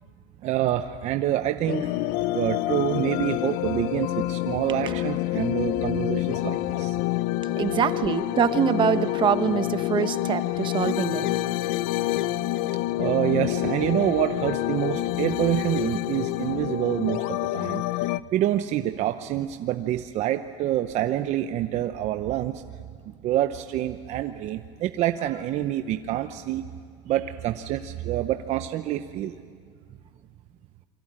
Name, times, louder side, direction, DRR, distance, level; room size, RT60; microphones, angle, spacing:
voice 1, 0.4-1.9 2.3-7.0 13.0-17.8 18.3-22.6 23.0-26.7 27.1-29.4, right 12 dB, 45° right, 8 dB, 0.8 m, -27 dB
sound 1, 1.7-18.2, left 16 dB, 65° left, 0.6 m, -27 dB
voice 2, 7.6-11.3, right 8 dB, 30° right, 11 dB, 1.1 m, -24 dB
27.5 x 23.5 x 8.9 m, 2.1 s
supercardioid pair, 135°, 16 cm